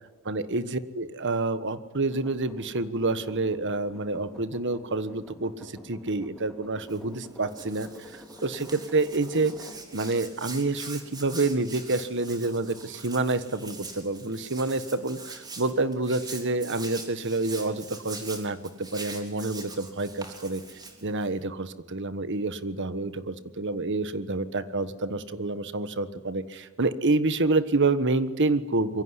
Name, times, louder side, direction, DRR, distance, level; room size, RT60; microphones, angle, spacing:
voice 1, 0.3-9.5 9.9-20.6 21.0-29.0, right 3 dB, 55° right, 13 dB, 1.4 m, -28 dB
sound 1, 2.1-10.2, left 1 dB, ahead, 4.2 m, -48 dB
Hands, 6.8-21.4, right 3 dB, 20° right, 3.7 m, -43 dB
26.0 x 23.0 x 9.8 m, 1.2 s
head